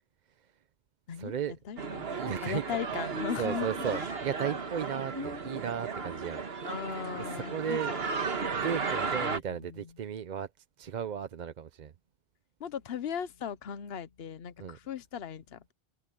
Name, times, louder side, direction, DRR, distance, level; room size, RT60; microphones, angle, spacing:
voice 1, 1.1-1.6 2.1-6.4 6.9-7.9 8.5-11.9 14.6-14.8, right 8 dB, 50° right, 0.7 m, -36 dB
voice 2, 1.7-2.1 2.4-3.7 6.6-8.0 9.1-9.6 12.6-15.7, left 8 dB, 70° left, 1.1 m, -37 dB
sound 1, 1.8-9.4, right 4 dB, 65° right, 1.7 m, -34 dB
omnidirectional pair, 1.1 m